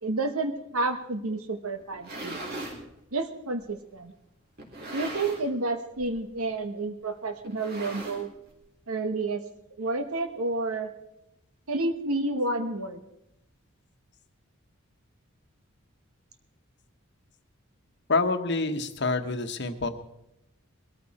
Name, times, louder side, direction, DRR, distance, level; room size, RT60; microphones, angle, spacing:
voice 1, 0.0-2.4 3.1-4.1 4.9-8.3 8.9-9.4 9.8-10.9 11.7-13.0, right 2 dB, 80° right, 8 dB, 1.1 m, -30 dB
sound 1, 1.8-2.8 3.6-3.7 4.6-5.6 5.9-6.2 6.5-6.6 7.4-8.5, right 1 dB, 45° right, 3.5 m, -39 dB
voice 2, 18.1-19.9, left 3 dB, 50° left, 8 dB, 1.1 m, -27 dB
20.5 x 13.5 x 4.2 m, 0.86 s
head